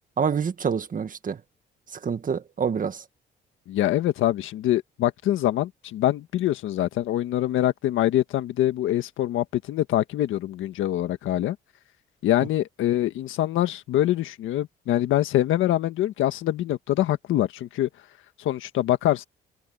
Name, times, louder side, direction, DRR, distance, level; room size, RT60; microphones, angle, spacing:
voice 1, 0.2-1.4 2.0-3.0, right 6 dB, 45° right, 1.8 m, -26 dB
voice 2, 3.7-11.6 12.2-17.9 18.4-19.2, left 13 dB, 85° left, 1.6 m, -24 dB
cardioid pair, 90°, 20 cm